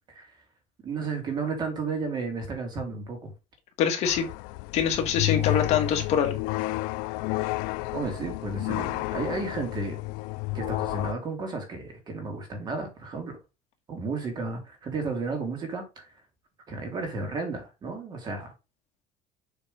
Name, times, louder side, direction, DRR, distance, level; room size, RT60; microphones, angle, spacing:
voice 1, 0.8-3.3 7.4-7.5 7.9-10.0 10.5-13.3 13.9-16.1 16.7-18.5, right 4 dB, 30° right, 2.4 m, -33 dB
voice 2, 3.8-4.3 4.7-6.4, left 8 dB, 50° left, 1.9 m, -24 dB
sound 1, 4.0-11.1, left 21 dB, 90° left, 0.4 m, -31 dB
7.2 x 4.0 x 5.2 m
cardioid pair, 170°, 14 cm